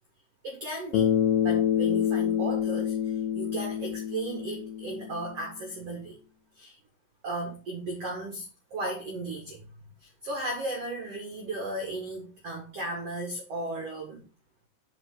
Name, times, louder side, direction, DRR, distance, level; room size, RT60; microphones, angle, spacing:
voice 1, 0.4-1.1 1.4-6.2 6.6-6.8 7.2-9.7 10.0-14.2, right 2 dB, 85° right, 0 dB, 1.3 m, -35 dB
Bass guitar, 0.9-5.3, left 9 dB, 75° left, 2.4 m, -27 dB
9.7 x 4.4 x 3.8 m, 0.32 s
omnidirectional pair, 5.6 m